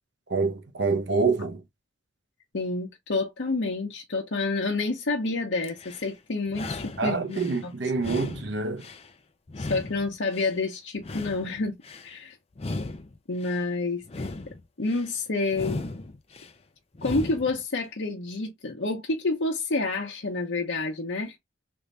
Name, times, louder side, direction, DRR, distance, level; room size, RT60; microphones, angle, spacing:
voice 1, 0.3-1.6 7.0-8.9, right 4 dB, 65° right, 0.8 m, -26 dB
voice 2, 2.5-7.7 9.6-11.8 12.0-12.4 13.3-14.3 14.8-15.8 17.0-21.4, left 3 dB, 75° left, 0.8 m, -29 dB
sound 1, 5.6-6.1 6.5-7.6 8.0-9.1 9.5-10.6 11.0-12.1 12.5-13.6 14.0-15.1 15.5-16.5 16.9-17.6, left 2 dB, 35° left, 0.5 m, -37 dB
3.5 x 2.6 x 3.2 m
head